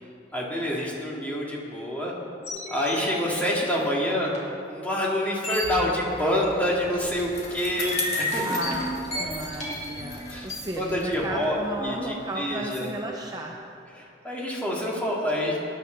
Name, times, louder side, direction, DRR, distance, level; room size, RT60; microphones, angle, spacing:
voice 1, 0.3-2.2 2.7-4.3 4.7-8.6 10.3-10.5 10.8-12.9 13.9-15.6, equal, 10° left, -4 dB, 2.3 m, -27 dB
sound 1, 2.4-3.2 4.3-4.4 5.0-5.1 5.4-6.0 6.4-6.5 7.8-10.6, left 1 dB, 40° left, 2.8 m, -32 dB
Bicycle, 6.2-12.9, left 3 dB, 65° left, 2.6 m, -38 dB
voice 2, 8.4-13.6, right 1 dB, 20° right, 0 dB, 0.7 m, -34 dB
19.5 x 10.5 x 4.0 m, 2.8 s
head